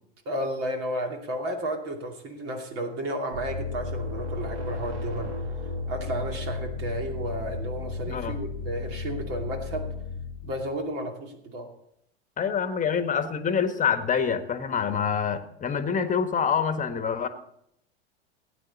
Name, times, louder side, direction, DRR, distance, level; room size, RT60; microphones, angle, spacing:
voice 1, 0.3-5.3 5.9-9.9 10.4-11.7, right 1 dB, 45° right, 2 dB, 2.6 m, -32 dB
sound 1, 3.3-10.7, left 3 dB, 70° right, 2.0 m, -34 dB
voice 2, 8.1-8.4 12.4-17.3, left 7 dB, 25° left, 8 dB, 1.5 m, -26 dB
18.0 x 9.3 x 4.1 m, 0.73 s
hypercardioid pair, 95°, 33 cm